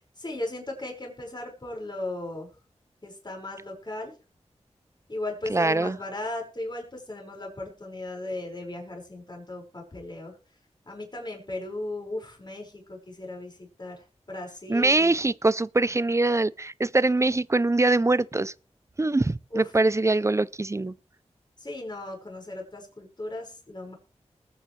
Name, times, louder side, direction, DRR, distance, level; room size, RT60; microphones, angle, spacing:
voice 1, 0.2-2.5 3.0-4.1 5.1-10.4 10.9-15.1 19.5-19.7 21.6-23.9, left 2 dB, 35° left, 5.2 m, -36 dB
voice 2, 5.5-6.0 14.7-18.5 19.0-20.9, right 2 dB, 25° right, 0.5 m, -23 dB
20.0 x 8.7 x 3.2 m
cardioid pair, 50°, 12 cm